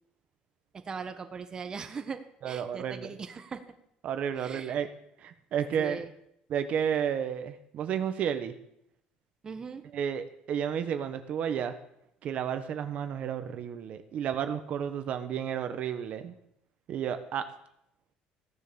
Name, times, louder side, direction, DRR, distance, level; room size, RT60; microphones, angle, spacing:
voice 1, 0.7-3.6 4.4-4.8 5.8-6.1 9.4-9.8, right 5 dB, 25° right, 7 dB, 1.4 m, -40 dB
voice 2, 2.4-3.1 4.0-4.9 5.2-6.0 6.5-8.5 9.9-11.7 12.2-16.3 16.9-17.4, right 8 dB, 50° right, 9 dB, 1.3 m, -32 dB
16.0 x 10.5 x 7.1 m, 0.76 s
cardioid pair, 140°, 3 cm